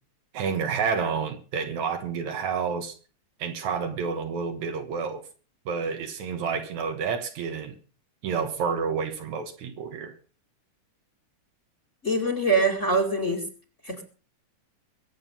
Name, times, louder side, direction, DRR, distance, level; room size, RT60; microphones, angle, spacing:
voice 1, 0.3-3.0 3.4-5.2 5.7-7.8 8.2-10.1, right 6 dB, 65° right, 2.6 m, -29 dB
voice 2, 12.0-13.4 13.9-14.0, right 2 dB, 25° left, 2.4 m, -24 dB
23.0 x 8.1 x 5.4 m
omnidirectional pair, 3.7 m